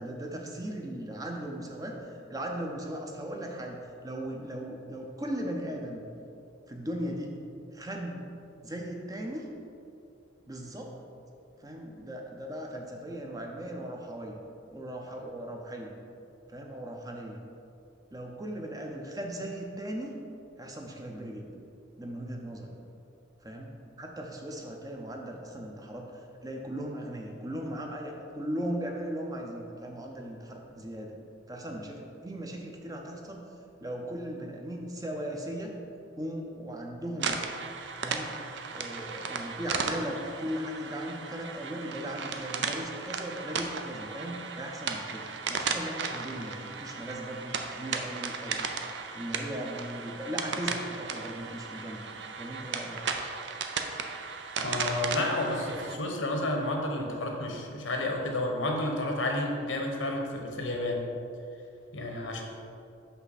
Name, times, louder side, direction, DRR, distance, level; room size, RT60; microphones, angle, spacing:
voice 1, 0.0-2.0 2.3-6.0 6.7-7.4 7.7-8.3 8.6-9.4 10.5-10.9 11.6-15.9 16.5-17.4 18.1-20.2 20.6-21.5 22.0-22.7 23.4-23.7 24.0-31.2 31.5-33.5 33.8-35.8 36.2-37.3 38.0-38.4 38.7-48.7 49.1-52.1 52.4-53.0, right 1 dB, 20° right, 1 dB, 0.6 m, -38 dB
sound 1, 37.2-56.0, right 5 dB, 60° right, 0.5 m, -35 dB
voice 2, 54.6-61.0 61.9-62.4, left 1 dB, 80° left, 1 dB, 1.0 m, -31 dB
6.0 x 5.7 x 4.1 m, 2.6 s
head